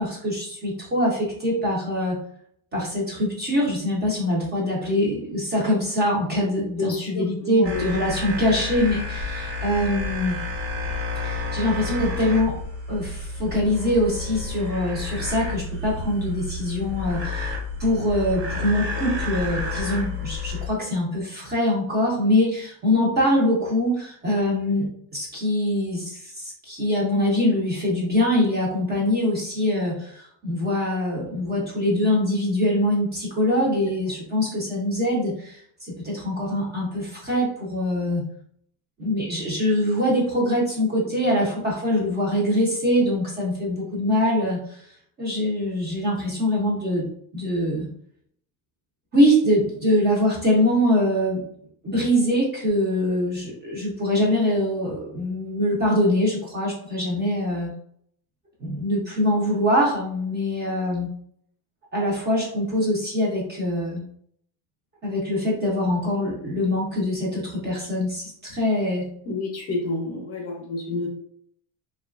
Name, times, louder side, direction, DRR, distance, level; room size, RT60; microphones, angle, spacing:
voice 1, 0.0-2.2 2.7-10.4 11.2-12.5 12.9-17.5 17.8-24.8 25.1-38.2 39.0-44.8 45.2-47.1 47.3-47.9 49.1-51.4 51.8-57.7 58.6-61.1 61.9-64.0 65.0-69.1, left 1 dB, 20° right, -4 dB, 0.5 m, -23 dB
voice 2, 6.8-7.8 69.2-71.1, left 3 dB, 30° left, 0 dB, 0.6 m, -29 dB
sound 1, 7.6-20.7, left 3 dB, 75° right, 0.9 m, -30 dB
2.8 x 2.3 x 2.3 m, 0.66 s
cardioid pair, 150°, 46 cm